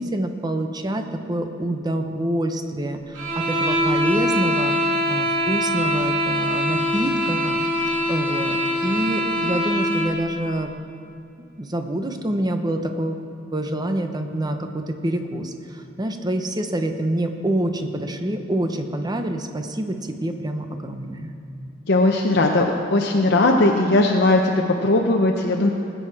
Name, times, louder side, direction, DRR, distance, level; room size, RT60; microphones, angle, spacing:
voice 1, 0.0-4.7 5.1-10.7 11.6-13.2 13.5-21.3, right 1 dB, 20° right, 6 dB, 0.8 m, -26 dB
sound 1, 3.1-10.2, equal, 85° right, 2.8 m, -23 dB
voice 2, 21.9-25.7, left 2 dB, 60° left, 1 dB, 0.8 m, -18 dB
20.0 x 8.0 x 4.8 m, 2.5 s
head